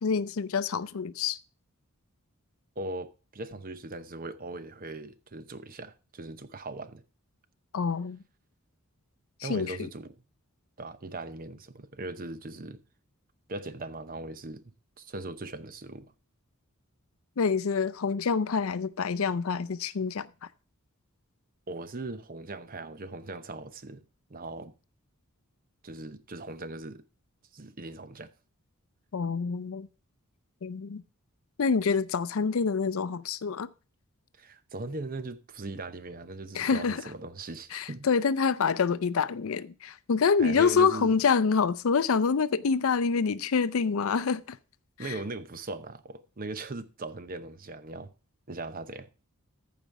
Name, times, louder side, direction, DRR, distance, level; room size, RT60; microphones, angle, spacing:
voice 1, 0.0-1.4 7.7-8.2 9.4-9.8 17.4-20.5 29.1-29.9 30.6-31.0 31.6-33.7 36.5-37.0 37.7-44.6 45.0-45.2, left 5 dB, 65° left, 0.5 m, -26 dB
voice 2, 2.8-7.0 9.4-10.2 10.8-12.8 13.5-16.1 21.7-24.0 24.3-24.7 25.8-27.0 27.5-28.3 34.4-38.1 40.4-41.2 45.0-48.1 48.5-49.1, right 2 dB, 40° right, 0.8 m, -39 dB
14.5 x 5.2 x 4.7 m
head